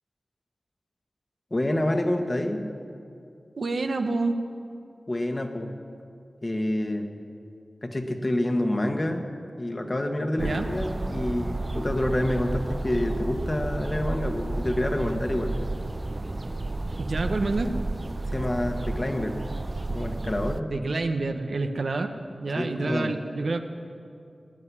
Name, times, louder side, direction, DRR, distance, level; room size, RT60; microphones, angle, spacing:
voice 1, 1.5-2.6 5.1-5.7 6.4-7.1 7.8-9.3 9.6-15.6 18.3-19.4 19.9-20.7 22.6-23.1, left 1 dB, 35° left, 4 dB, 1.6 m, -27 dB
voice 2, 3.6-4.4 10.4-10.7 17.0-17.7 20.7-22.1 22.4-23.6, right 3 dB, 75° right, 6 dB, 1.0 m, -28 dB
sound 1, 10.4-20.6, right 2 dB, 35° right, 0.6 m, -31 dB
19.0 x 7.7 x 9.8 m, 2.5 s
wide cardioid pair, 65°, 0 cm